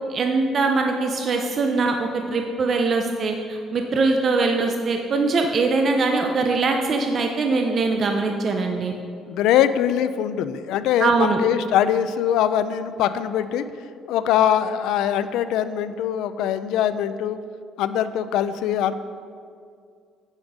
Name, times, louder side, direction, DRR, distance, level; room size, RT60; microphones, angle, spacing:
voice 1, 0.1-8.9 11.0-11.4, right 3 dB, 35° right, 3 dB, 0.5 m, -22 dB
voice 2, 9.3-13.6 14.1-17.4 17.8-18.9, left 10 dB, 80° left, 12 dB, 0.4 m, -22 dB
9.2 x 5.1 x 5.3 m, 2.3 s
cardioid pair, 175°, 0 cm